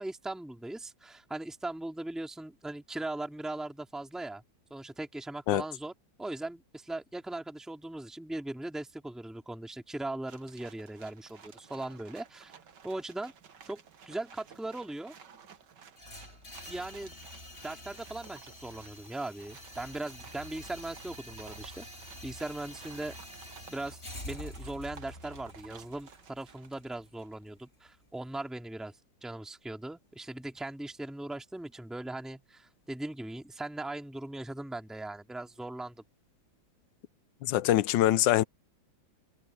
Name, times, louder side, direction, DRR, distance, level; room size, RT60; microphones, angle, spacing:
voice 1, 0.0-4.4 4.7-5.9 6.2-12.5 12.8-13.3 13.6-13.8 14.0-15.1 16.7-17.3 17.6-23.1 23.7-24.0 24.2-28.9 29.2-36.0, right 2 dB, ahead, 2.3 m, -39 dB
sound 1, 10.3-27.4, right 7 dB, 70° right, 2.0 m, -54 dB
sound 2, 16.0-28.0, left 1 dB, 35° left, 4.2 m, -47 dB
voice 2, 37.4-38.4, left 13 dB, 80° left, 1.3 m, -24 dB
omnidirectional pair, 2.0 m